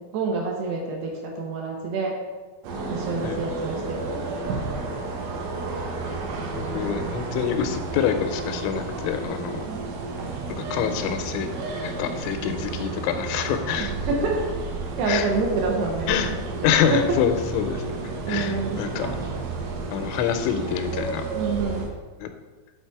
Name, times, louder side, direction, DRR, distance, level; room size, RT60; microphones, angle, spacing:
voice 1, 0.0-2.2 2.9-4.6 9.6-9.9 13.8-14.4 15.0-16.6 16.9-17.2 18.3-18.8 21.3-21.9, right 3 dB, 70° right, 0 dB, 2.8 m, -27 dB
sound 1, 2.6-21.9, right 3 dB, 90° right, 3.5 m, -31 dB
voice 2, 6.6-9.7 10.7-11.5 11.8-14.2 15.1-15.3 16.1-16.3 16.6-17.8 18.3-19.1 19.9-21.3 22.2-22.3, left 8 dB, 85° left, 7 dB, 3.1 m, -26 dB
10.5 x 4.2 x 4.6 m, 1.3 s
omnidirectional pair, 5.3 m